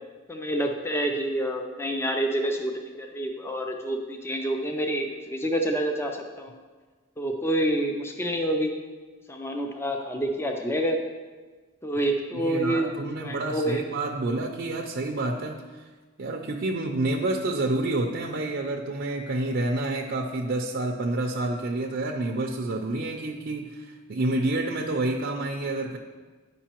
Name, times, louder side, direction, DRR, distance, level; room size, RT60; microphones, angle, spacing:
voice 1, 0.3-6.6 7.2-8.7 9.3-11.0 11.8-12.9 13.2-13.8, right 1 dB, 10° left, 3 dB, 0.5 m, -28 dB
voice 2, 12.3-15.8 16.2-26.0, right 2 dB, 55° right, 0 dB, 0.5 m, -28 dB
10.0 x 5.3 x 3.0 m, 1.4 s
head